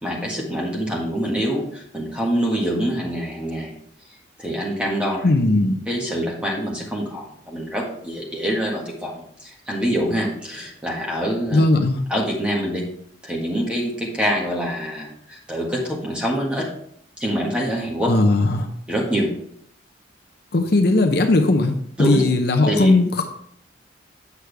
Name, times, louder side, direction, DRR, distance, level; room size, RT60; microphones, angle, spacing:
voice 1, 0.0-3.7 4.4-5.3 5.9-11.6 12.1-12.8 13.2-16.7 17.2-18.1 18.9-19.3 22.0-22.2 22.7-22.9, equal, 5° right, -3 dB, 1.6 m, -25 dB
voice 2, 5.2-5.8 11.5-12.0 18.0-18.7 20.5-21.7 22.0-23.2, left 2 dB, 55° left, 5 dB, 0.7 m, -18 dB
8.2 x 6.3 x 3.4 m, 0.67 s
head